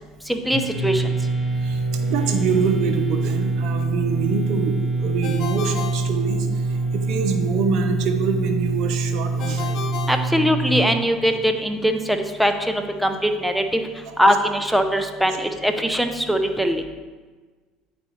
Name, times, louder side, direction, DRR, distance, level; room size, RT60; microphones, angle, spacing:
voice 1, 0.3-1.1 10.1-13.8 14.2-16.8, equal, ahead, 6 dB, 0.6 m, -21 dB
sound 1, 0.5-10.7, right 3 dB, 20° right, 1.6 m, -24 dB
voice 2, 1.6-9.8, right 5 dB, 65° right, 6 dB, 0.7 m, -25 dB
Ringtone, 5.2-6.9 9.4-11.1, left 7 dB, 60° left, 0.7 m, -34 dB
8.7 x 4.2 x 3.2 m, 1.4 s
supercardioid pair, 90°, 0 cm